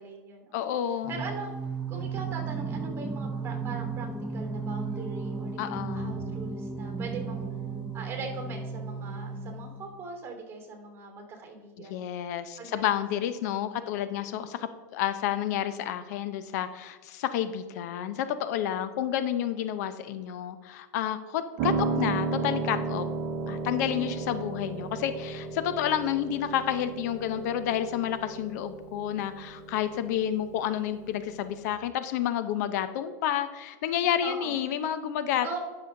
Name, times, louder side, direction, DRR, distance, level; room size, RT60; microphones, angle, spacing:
voice 1, 0.0-0.7 1.1-1.5 1.9-7.5 7.9-12.0 12.6-12.8 13.4-13.5 13.8-13.9 23.9-24.2 34.2-34.6 35.4-35.6, right 4 dB, 25° right, 3 dB, 2.7 m, -41 dB
voice 2, 0.5-1.2 5.6-6.2 11.8-23.1 23.5-35.6, left 10 dB, 65° left, 12 dB, 0.6 m, -30 dB
Singing, 1.0-10.0, right 4 dB, 5° right, 0.5 m, -34 dB
Piano, 21.6-31.7, right 4 dB, 55° right, 0.9 m, -34 dB
11.0 x 6.3 x 3.7 m, 1.3 s
supercardioid pair, 130°, 10 cm